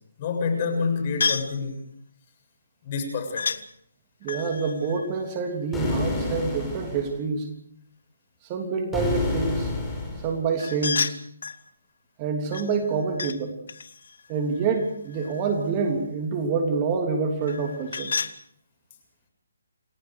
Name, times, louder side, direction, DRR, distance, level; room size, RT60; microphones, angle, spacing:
voice 1, 0.2-1.8 2.8-3.6, left 5 dB, 35° left, 6 dB, 7.3 m, -27 dB
sound 1, 1.2-1.6 3.4-3.6 4.2-6.1 10.6-11.6 12.5-13.4 13.7-15.6 17.4-18.4, left 5 dB, 70° left, 1.4 m, -31 dB
voice 2, 4.2-7.5 8.5-9.7 10.2-11.2 12.2-13.5 14.3-18.1, right 5 dB, 25° right, 3 dB, 3.2 m, -27 dB
sound 2, 5.7-7.1 8.9-10.4, left 2 dB, 10° left, 5.6 m, -28 dB
29.0 x 20.5 x 4.9 m, 0.66 s
hypercardioid pair, 155°, 0 cm